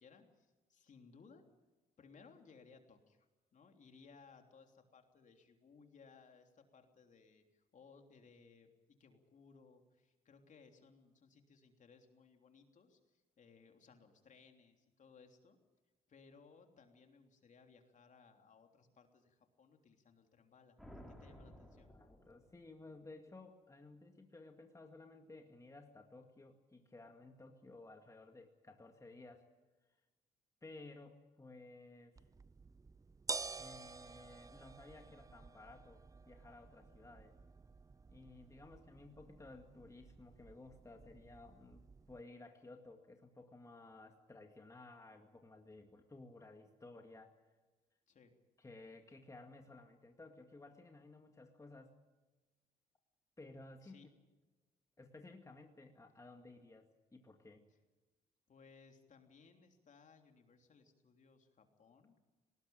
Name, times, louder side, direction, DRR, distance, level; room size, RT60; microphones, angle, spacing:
voice 1, 0.0-1.4 2.0-15.6 16.1-21.9 48.1-48.3 53.8-54.1 58.5-62.2, left 5 dB, 50° left, 4 dB, 3.3 m, -63 dB
sound 1, 20.8-22.9, equal, ahead, 4.8 m, -56 dB
voice 2, 21.9-29.4 30.6-32.2 33.6-37.4 38.1-47.3 48.6-51.9 53.4-54.0 55.0-57.6, left 2 dB, 20° left, 4 dB, 2.2 m, -56 dB
sound 2, 32.2-42.2, right 4 dB, 20° right, 0.6 m, -50 dB
19.0 x 19.0 x 8.9 m, 1.2 s
supercardioid pair, 70°, 16 cm